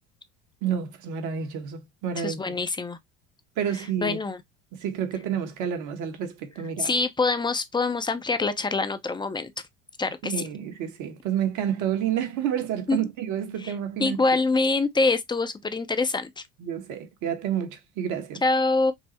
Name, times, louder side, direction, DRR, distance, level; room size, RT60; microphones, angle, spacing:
voice 1, 0.6-2.4 3.6-4.2 4.7-6.9 10.2-14.2 16.6-18.4, right 9 dB, 60° right, 1.1 m, -29 dB
voice 2, 2.2-3.0 4.0-4.4 6.8-9.5 10.0-10.3 12.9-13.0 13.6-13.7 14.0-16.3 18.4-18.9, left 3 dB, 15° left, 0.5 m, -25 dB
5.5 x 2.0 x 2.9 m
hypercardioid pair, 75°, 35 cm